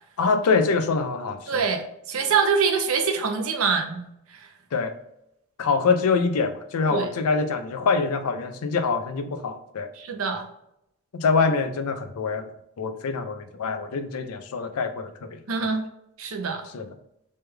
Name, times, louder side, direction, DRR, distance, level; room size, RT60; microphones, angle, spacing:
voice 1, 0.2-1.7 4.7-4.9 5.6-9.9 11.1-12.5 12.8-15.4 16.7-16.9, left 4 dB, 85° left, 8 dB, 0.4 m, -25 dB
voice 2, 1.5-4.0 4.3-4.5 6.9-7.1 10.0-10.5 15.5-15.8 16.2-16.7, right 5 dB, 70° right, 5 dB, 0.6 m, -24 dB
3.3 x 3.2 x 2.2 m, 0.80 s
head